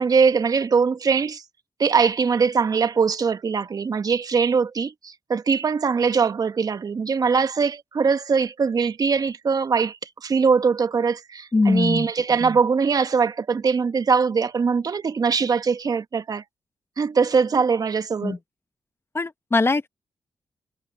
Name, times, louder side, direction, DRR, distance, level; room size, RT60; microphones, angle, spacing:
voice 1, 0.0-1.4 1.8-16.4 17.0-18.4, right 5 dB, 55° right, 1.4 m, -22 dB
voice 2, 11.5-12.1 18.2-18.4 19.1-19.9, left 3 dB, 35° left, 1.1 m, -21 dB
supercardioid pair, 40°, 8 cm